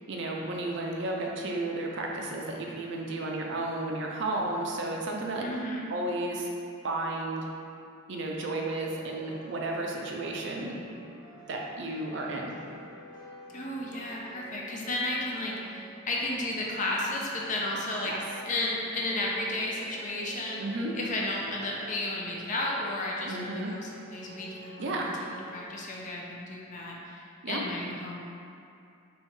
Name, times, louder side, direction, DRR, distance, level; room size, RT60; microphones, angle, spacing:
voice 1, 0.1-5.5 5.9-6.5 6.8-7.4 8.1-10.8 11.5-12.5 18.0-18.2 20.6-20.9 23.2-23.7 24.8-25.1 27.4-27.6, right 2 dB, 60° right, -1 dB, 0.4 m, -33 dB
voice 2, 5.4-5.9 13.5-18.1 18.4-20.6 20.9-25.0 25.2-28.3, left 2 dB, 40° left, -2 dB, 0.5 m, -33 dB
sound 1, 9.0-25.7, right 1 dB, 55° left, 0.9 m, -50 dB
3.5 x 3.0 x 3.2 m, 2.5 s
head